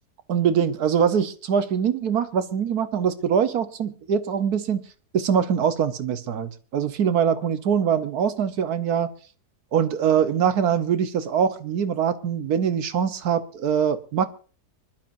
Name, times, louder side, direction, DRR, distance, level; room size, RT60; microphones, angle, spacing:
voice 1, 0.3-4.8 5.1-9.1 9.7-14.2, right 7 dB, 65° right, 1.6 m, -23 dB
24.5 x 12.0 x 2.7 m
omnidirectional pair, 1.8 m